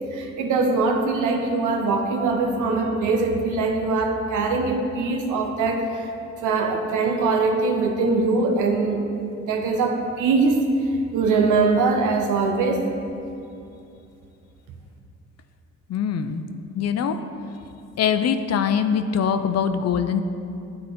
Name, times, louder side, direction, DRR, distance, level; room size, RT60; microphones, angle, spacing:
voice 1, 0.1-6.1 6.4-9.0 9.4-10.6 11.1-12.8, right 3 dB, 85° right, 3 dB, 1.0 m, -22 dB
voice 2, 15.9-16.4 16.7-17.2 18.0-20.2, left 7 dB, 55° left, 9 dB, 0.6 m, -23 dB
10.0 x 4.1 x 5.2 m, 2.7 s
cardioid pair, 90°, 30 cm